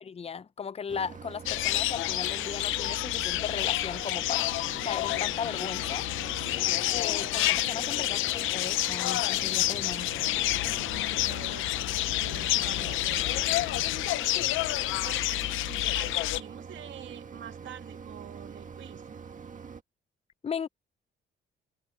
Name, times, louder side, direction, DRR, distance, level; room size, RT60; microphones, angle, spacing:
voice 1, 0.0-4.5 4.8-6.1 6.9-10.1 20.4-20.7, left 6 dB, 30° left, 0.6 m, -37 dB
Mechanisms, 0.9-19.8, right 6 dB, 40° right, 1.8 m, -45 dB
sound 1, 1.5-16.4, left 16 dB, 90° left, 0.6 m, -29 dB
voice 2, 11.2-13.3 15.0-19.0, right 10 dB, 70° right, 2.2 m, -46 dB
cardioid pair, 90°, 20 cm